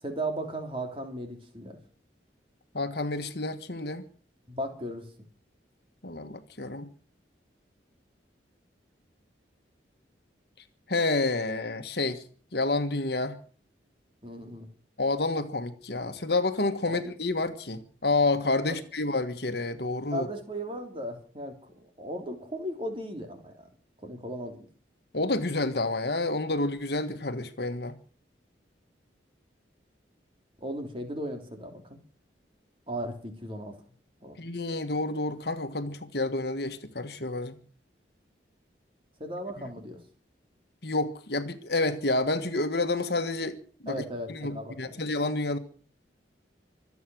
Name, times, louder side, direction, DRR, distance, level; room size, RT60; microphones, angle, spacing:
voice 1, 0.0-1.8 4.5-5.0 14.2-14.7 16.9-17.0 18.7-18.8 20.1-23.5 24.0-24.6 30.6-32.0 32.9-33.8 34.2-34.4 39.2-40.0 43.9-45.0, right 1 dB, 30° right, 3.1 m, -36 dB
voice 2, 2.7-4.0 6.0-6.9 10.9-12.2 12.5-13.4 15.0-20.3 25.1-28.0 34.4-37.6 39.6-39.7 40.8-43.6 43.8-44.0 44.3-45.6, left 2 dB, 60° left, 1.5 m, -29 dB
25.0 x 8.5 x 6.3 m
head